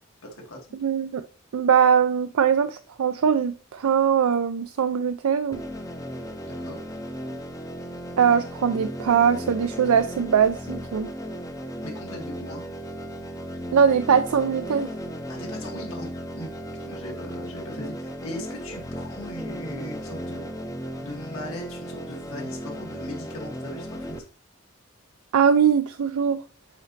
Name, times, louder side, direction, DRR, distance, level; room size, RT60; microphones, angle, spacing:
voice 1, 0.2-0.6 6.5-6.9 11.8-12.6 15.3-20.4 21.0-24.2, left 1 dB, 75° left, 2.0 m, -39 dB
voice 2, 0.8-1.3 1.5-5.6 8.2-11.1 13.7-14.9 25.3-26.4, right 7 dB, 90° right, 0.4 m, -21 dB
sound 1, 5.5-24.2, equal, 15° left, 0.6 m, -35 dB
8.2 x 4.0 x 3.2 m
head